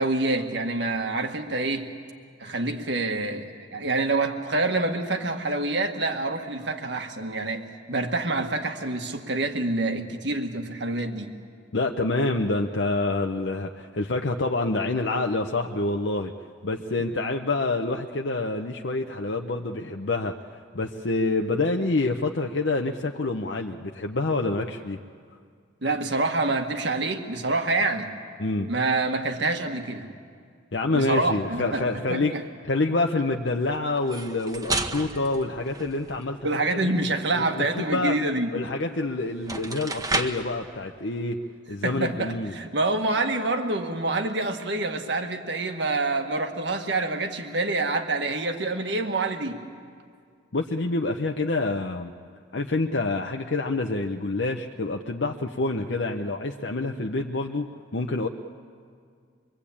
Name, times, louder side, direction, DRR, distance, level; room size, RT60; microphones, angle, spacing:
voice 1, 0.0-1.9 2.4-11.3 25.8-28.1 28.7-30.1 30.9-31.8 32.1-32.4 36.4-38.5 41.8-49.6, right 2 dB, 65° right, 5 dB, 1.7 m, -27 dB
voice 2, 11.7-16.3 16.6-25.0 28.4-28.7 30.7-32.3 32.6-36.4 36.7-36.9 37.3-38.1 38.5-41.4 41.7-42.5 50.5-52.1 52.5-58.3, left 2 dB, 65° left, 3 dB, 0.8 m, -27 dB
sound 1, 34.0-36.4 38.8-38.9 39.3-40.5, right 2 dB, 20° right, 1.1 m, -31 dB
25.0 x 23.0 x 8.6 m, 2.1 s
head